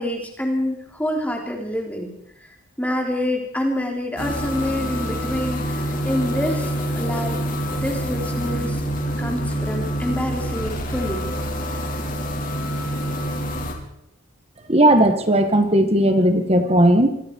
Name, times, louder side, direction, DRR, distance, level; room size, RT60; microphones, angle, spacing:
voice 1, 0.0-2.1 2.4-2.5 2.8-7.4 7.7-8.8 9.2-11.3, left 1 dB, 5° left, 1 dB, 3.7 m, -27 dB
sound 1, 4.2-13.7, equal, 40° left, 4.4 m, -26 dB
voice 2, 14.7-17.1, right 1 dB, 30° right, 7 dB, 1.8 m, -16 dB
26.5 x 23.0 x 4.8 m, 0.72 s
head